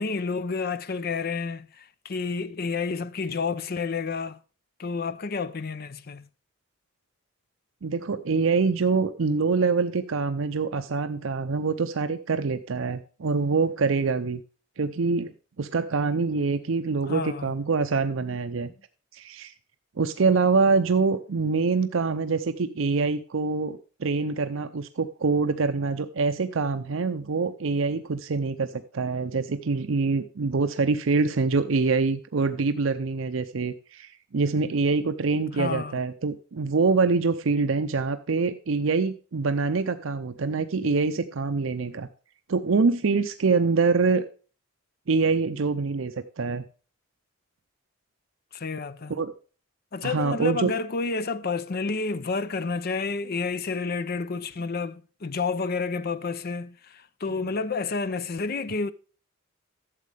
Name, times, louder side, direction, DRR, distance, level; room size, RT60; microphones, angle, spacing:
voice 1, 0.0-4.4 4.8-6.3 17.1-17.5 18.2-18.4 35.5-36.0 48.5-49.1 49.9-58.9, left 4 dB, 50° left, 0.6 m, -30 dB
voice 2, 7.8-14.4 14.8-15.3 15.6-18.7 19.1-19.5 20.0-42.1 42.5-44.2 45.1-46.6 49.1-49.3 50.0-50.7, right 4 dB, 70° right, 0.6 m, -25 dB
12.0 x 7.5 x 3.4 m
head